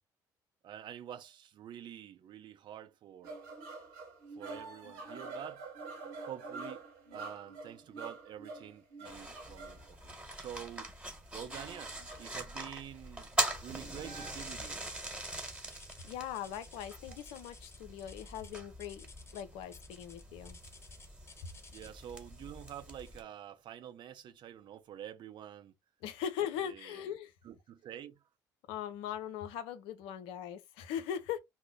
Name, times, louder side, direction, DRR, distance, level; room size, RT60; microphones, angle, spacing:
voice 1, 0.6-3.4 4.4-5.7 6.3-6.8 7.1-10.9 11.3-13.3 13.6-14.8 21.7-25.7 26.6-27.1 27.4-28.2, right 10 dB, 55° right, 0.6 m, -47 dB
sound 1, 3.2-9.9 11.3-12.3 13.3-14.3, right 3 dB, 75° right, 1.0 m, -47 dB
sound 2, 9.0-23.2, right 1 dB, 10° right, 1.3 m, -42 dB
sound 3, 15.7-22.1 23.0-23.3 23.9-24.0 24.6-24.7, left 4 dB, 25° left, 0.7 m, -56 dB
voice 2, 16.0-19.1 19.3-20.6 26.0-27.3 28.7-31.4, left 9 dB, 65° left, 0.5 m, -40 dB
2.6 x 2.1 x 3.7 m
hypercardioid pair, 50°, 10 cm